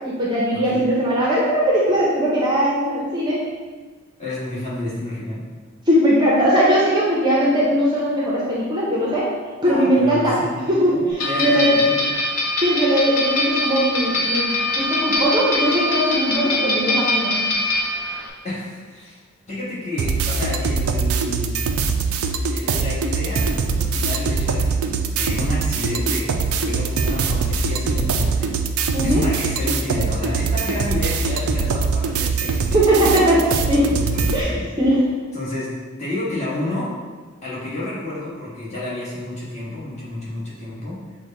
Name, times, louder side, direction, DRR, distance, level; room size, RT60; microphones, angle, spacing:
voice 1, 0.0-3.4 5.9-9.3 9.6-10.4 10.7-11.8 12.6-17.4 28.9-29.2 32.7-33.4 33.7-33.9 34.3-34.5 34.8-35.0, equal, 20° right, -6 dB, 0.7 m, -19 dB
voice 2, 0.5-0.9 4.2-5.4 9.6-10.7 11.2-12.0 18.4-19.2 19.5-21.6 22.5-28.6 29.0-34.7 35.3-36.9 37.4-41.0, left 2 dB, 30° left, -8 dB, 1.3 m, -30 dB
sound 1, 11.2-18.3, left 1 dB, 80° left, 0.8 m, -23 dB
sound 2, 20.0-34.4, right 4 dB, 80° right, 0.4 m, -22 dB
6.1 x 2.2 x 3.8 m, 1.4 s
head